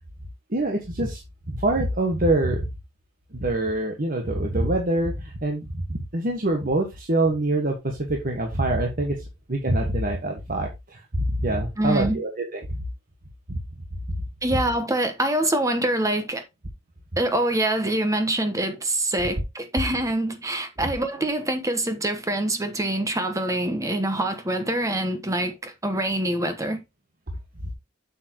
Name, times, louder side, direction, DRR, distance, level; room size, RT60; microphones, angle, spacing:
voice 1, 0.5-1.2 1.5-2.7 3.3-9.1 9.5-12.6 13.5-13.6, right 1 dB, 45° right, 1.5 m, -25 dB
voice 2, 11.8-12.2 14.4-16.4 17.2-26.8, right 1 dB, 15° right, 1.1 m, -25 dB
8.2 x 7.0 x 3.0 m
head